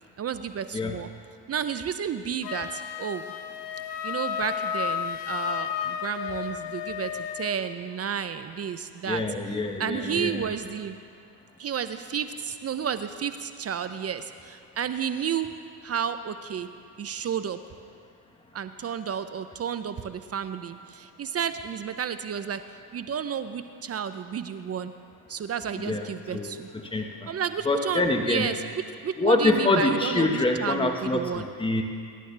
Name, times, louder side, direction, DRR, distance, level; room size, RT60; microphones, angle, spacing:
voice 1, 0.2-1.1 1.5-3.3 4.0-9.2 9.8-11.0 11.6-15.6 15.8-16.7 17.0-17.6 18.5-22.6 22.9-24.9 25.3-26.7 27.3-31.5, right 8 dB, 30° right, 10 dB, 0.6 m, -31 dB
Wind instrument woodwind instrument, 2.4-7.6, left 9 dB, 55° left, 1.0 m, -32 dB
voice 2, 9.1-10.4 25.8-26.1 26.3-26.5 26.9-27.3 27.6-28.5 29.2-31.8, left 2 dB, 10° left, 3 dB, 1.3 m, -25 dB
23.5 x 11.0 x 3.4 m, 2.3 s
hypercardioid pair, 80°, 49 cm